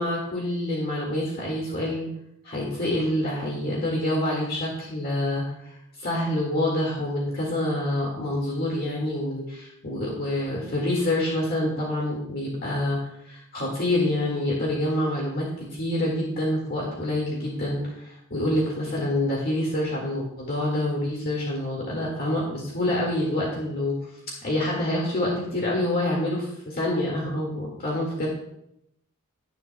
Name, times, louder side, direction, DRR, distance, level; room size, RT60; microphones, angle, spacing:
voice 1, 0.0-2.1 2.4-13.0 13.2-23.9 24.4-28.3, left 1 dB, 45° left, -3 dB, 1.9 m, -27 dB
17.5 x 6.9 x 2.2 m, 0.78 s
head